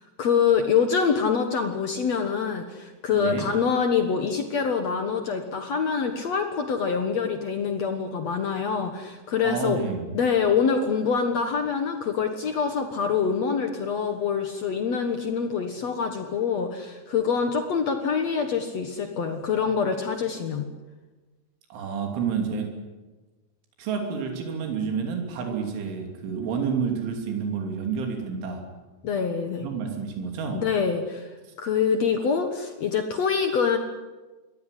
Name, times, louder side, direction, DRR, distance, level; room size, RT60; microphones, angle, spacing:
voice 1, 0.2-9.8 10.1-20.7 29.0-29.7 30.5-31.3 31.6-33.8, left 6 dB, 75° left, 6 dB, 1.5 m, -25 dB
voice 2, 3.1-3.5 9.4-10.1 21.7-22.7 23.8-28.6 29.6-30.6, right 6 dB, 85° right, 3 dB, 5.4 m, -29 dB
23.0 x 17.5 x 10.0 m, 1.2 s
omnidirectional pair, 5.3 m